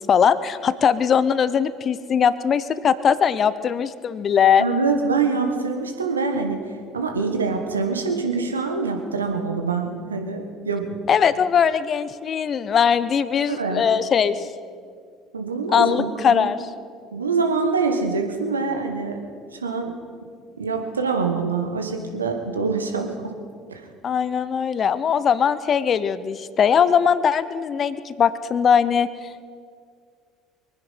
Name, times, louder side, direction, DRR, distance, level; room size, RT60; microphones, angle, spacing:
voice 1, 0.1-4.7 11.1-14.5 15.7-16.7 24.0-29.1, left 7 dB, 40° left, 15 dB, 0.8 m, -20 dB
voice 2, 4.6-6.6 6.9-11.0 13.5-13.8 15.3-16.5 17.1-19.2 19.6-19.9 20.6-23.3 23.7-23.9, right 4 dB, 85° right, 4 dB, 1.4 m, -25 dB
23.5 x 9.8 x 5.7 m, 2.1 s
figure-of-eight pair, 60°, 0 cm